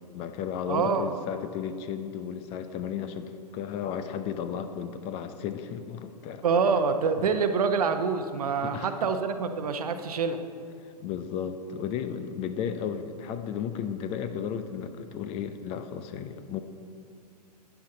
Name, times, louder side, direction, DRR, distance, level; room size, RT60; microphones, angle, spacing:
voice 1, 0.1-6.4 7.2-7.3 8.6-9.1 11.0-16.6, left 8 dB, 30° left, 9 dB, 0.6 m, -34 dB
voice 2, 0.7-1.2 6.4-10.4, right 5 dB, 60° right, 8 dB, 0.9 m, -26 dB
13.0 x 9.2 x 3.8 m, 2.3 s
figure-of-eight pair, 110°, 21 cm